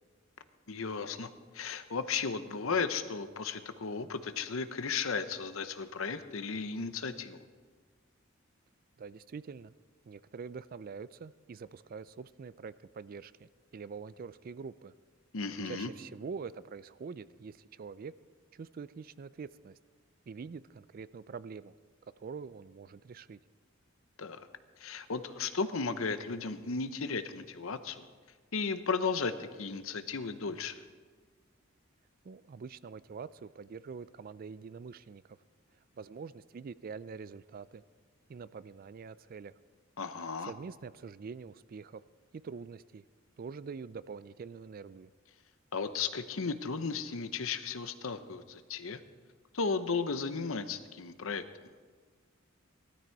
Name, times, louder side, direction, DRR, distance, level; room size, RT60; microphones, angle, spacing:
voice 1, 0.7-7.4 15.3-15.9 24.2-24.5 24.8-28.1 28.5-30.7 40.0-40.5 45.7-49.0 49.5-51.4, left 5 dB, 75° left, 11 dB, 0.9 m, -35 dB
voice 2, 9.0-9.7 10.1-14.9 15.6-18.1 18.5-19.8 20.3-21.7 22.2-23.4 32.2-35.4 36.0-37.8 38.3-39.5 40.4-42.0 42.3-43.0 43.4-45.1, right 5 dB, 45° right, 17 dB, 0.4 m, -45 dB
16.5 x 13.5 x 4.6 m, 1.5 s
head